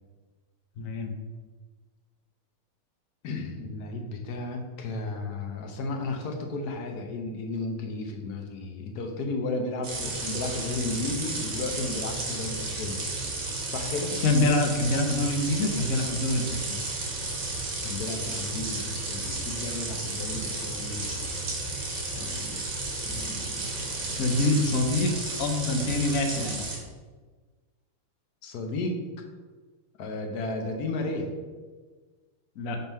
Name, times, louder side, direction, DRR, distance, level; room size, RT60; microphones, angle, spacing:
voice 1, 0.8-1.1 14.2-16.8 24.2-26.6 32.6-32.8, left 2 dB, 85° left, 4 dB, 0.7 m, -25 dB
voice 2, 3.2-13.0 13.7-14.1 17.8-21.6 22.2-22.7 23.0-24.2 28.4-29.0 30.0-31.3, left 2 dB, 60° left, 3 dB, 1.1 m, -34 dB
sound 1, 9.8-26.8, right 3 dB, 55° right, 1.9 m, -33 dB
6.1 x 3.6 x 5.4 m, 1.4 s
omnidirectional pair, 2.4 m